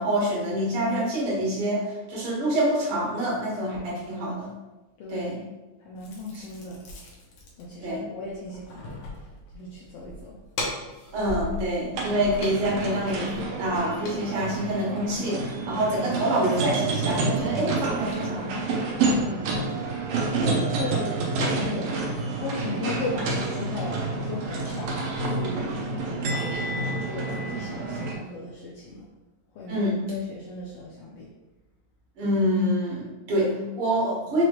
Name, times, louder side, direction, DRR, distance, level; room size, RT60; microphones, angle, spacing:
voice 1, 0.0-4.5 5.1-5.4 6.3-6.4 7.8-8.0 11.1-13.3 13.6-18.6 20.4-20.6 21.6-21.8 29.7-30.0 32.2-34.5, equal, 55° right, -5 dB, 2.0 m, -26 dB
voice 2, 5.0-5.3 5.8-6.9 7.6-9.3 9.5-10.4 19.1-19.6 20.4-21.1 21.4-21.9 22.4-24.0 24.2-25.7 26.0-29.1 29.5-31.3, left 3 dB, 85° left, -4 dB, 1.3 m, -36 dB
sound 1, 6.0-15.3, left 2 dB, 70° left, 1.3 m, -40 dB
sound 2, 11.9-28.2, right 3 dB, 75° right, 1.5 m, -29 dB
4.9 x 3.0 x 3.0 m, 1.1 s
omnidirectional pair, 3.4 m